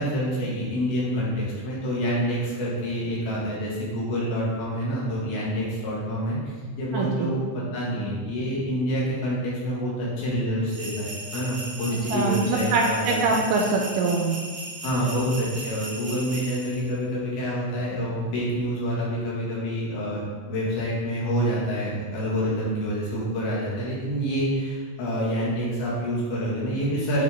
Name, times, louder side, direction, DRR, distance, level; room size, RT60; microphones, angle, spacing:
voice 1, 0.0-6.4 6.8-13.2 14.8-27.2, equal, 85° left, -6 dB, 3.9 m, -27 dB
voice 2, 6.9-7.3 12.1-14.4, right 3 dB, 75° right, 0 dB, 2.2 m, -23 dB
sound 1, 10.7-16.9, right 2 dB, 60° right, 2.6 m, -37 dB
9.4 x 4.7 x 3.7 m, 1.5 s
omnidirectional pair, 4.2 m